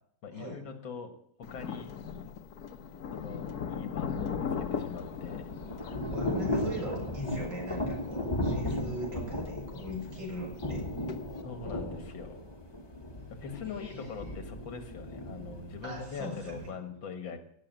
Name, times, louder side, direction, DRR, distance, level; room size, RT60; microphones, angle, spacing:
voice 1, 0.2-1.1 1.5-1.9 3.1-5.4 11.4-12.4 13.3-17.4, left 5 dB, 90° left, 5 dB, 2.4 m, -42 dB
Thunder, 1.4-11.4, left 6 dB, 60° left, 1.4 m, -40 dB
Thunder / Rain, 4.8-16.7, left 1 dB, 15° left, 1.4 m, -36 dB
voice 2, 6.1-10.9 13.6-14.2 15.8-16.7, equal, 80° right, -1 dB, 6.8 m, -40 dB
17.0 x 6.9 x 9.0 m, 0.71 s
omnidirectional pair, 2.0 m